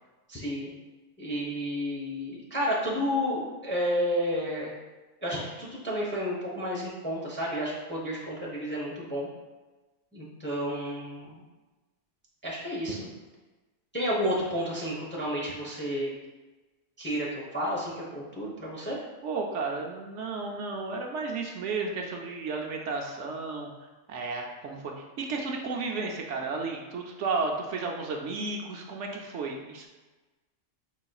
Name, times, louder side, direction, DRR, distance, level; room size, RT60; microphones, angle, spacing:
voice 1, 0.3-0.7 1.2-4.7 5.2-9.3 10.1-11.4 12.4-13.1 13.9-16.1 17.0-19.0, equal, 10° left, -5 dB, 0.6 m, -31 dB
voice 2, 19.2-23.7 24.1-29.9, right 4 dB, 70° right, 1 dB, 0.9 m, -33 dB
4.9 x 3.9 x 2.3 m, 1.2 s
omnidirectional pair, 1.3 m